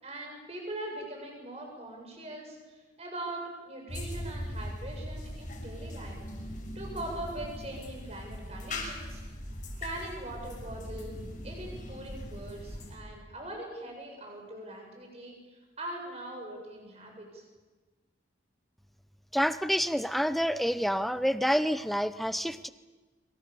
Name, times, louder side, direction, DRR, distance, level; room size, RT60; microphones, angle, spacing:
voice 1, 0.0-6.2 6.7-9.2 9.8-17.4, right 1 dB, 35° right, 1 dB, 7.5 m, -41 dB
sound 1, 3.9-13.0, left 1 dB, 45° left, 6.3 m, -40 dB
voice 2, 19.3-22.7, equal, ahead, 13 dB, 0.8 m, -28 dB
26.0 x 25.0 x 7.1 m, 1.3 s
head